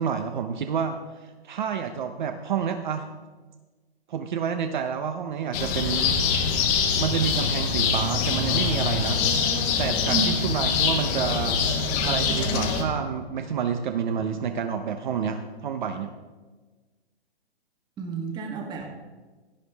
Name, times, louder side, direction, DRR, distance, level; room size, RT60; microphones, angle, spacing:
voice 1, 0.0-3.1 4.1-6.2 7.0-9.2 9.8-11.6 12.0-16.1, right 7 dB, 50° right, 7 dB, 0.9 m, -29 dB
sound 1, 5.5-12.8, left 5 dB, 25° left, 1.3 m, -24 dB
voice 2, 18.0-18.9, right 6 dB, 15° right, 2 dB, 1.5 m, -30 dB
16.5 x 9.6 x 3.5 m, 1.3 s
hypercardioid pair, 150°, 32 cm